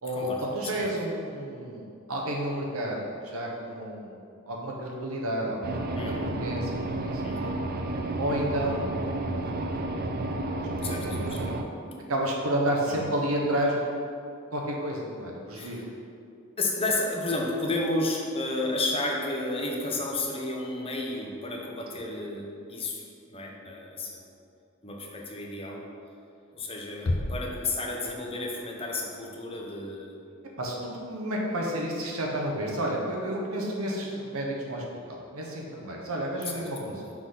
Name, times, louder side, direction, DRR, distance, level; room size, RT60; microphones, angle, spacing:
voice 1, 0.0-7.2 8.2-8.9 10.1-10.2 10.4-11.6 12.1-14.1 14.5-15.8 30.6-37.1, right 1 dB, 90° right, -1 dB, 1.1 m, -31 dB
sound 1, 5.6-11.6, right 2 dB, 45° right, 0.5 m, -31 dB
voice 2, 6.0-6.3 7.2-7.6 10.8-11.6 11.8-11.9 12.9-13.0 15.5-15.8 16.6-24.3 24.8-25.8 26.5-30.1 36.5-36.6, left 2 dB, 25° left, -1 dB, 0.8 m, -32 dB
sound 2, 27.0-28.7, left 1 dB, 75° left, 0.6 m, -32 dB
6.0 x 3.8 x 5.8 m, 2.5 s
head